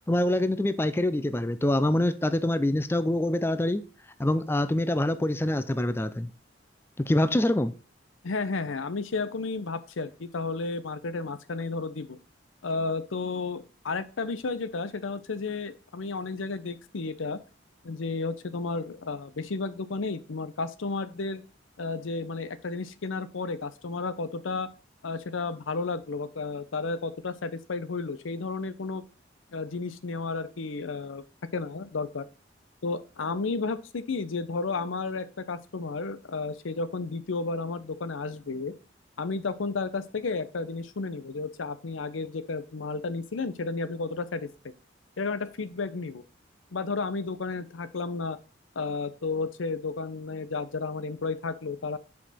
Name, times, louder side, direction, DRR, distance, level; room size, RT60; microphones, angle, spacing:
voice 1, 0.1-3.8 4.2-6.3 7.0-7.7, left 1 dB, 10° left, 0.4 m, -25 dB
voice 2, 8.2-12.2 12.6-17.4 17.8-21.4 21.8-24.7 25.0-29.0 29.5-31.2 31.5-32.2 32.8-38.7 39.2-44.5 45.2-46.2 46.7-48.4 48.8-52.0, left 3 dB, 90° left, 0.7 m, -32 dB
5.9 x 5.1 x 4.1 m
head